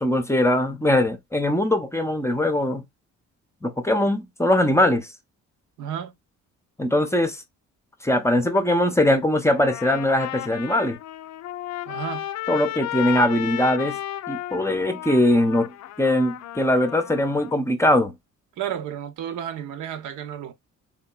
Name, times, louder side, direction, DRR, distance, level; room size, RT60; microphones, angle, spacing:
voice 1, 0.0-2.8 3.6-5.1 6.8-7.4 8.0-11.0 12.5-14.0 14.3-15.7 16.0-18.1, left 1 dB, 10° left, 0.6 m, -21 dB
voice 2, 5.8-6.1 11.9-12.3 18.6-20.5, right 9 dB, 80° right, 0.8 m, -32 dB
Trumpet, 9.5-17.5, left 13 dB, 65° left, 0.4 m, -34 dB
3.7 x 2.8 x 2.3 m
cardioid pair, 90°, 30 cm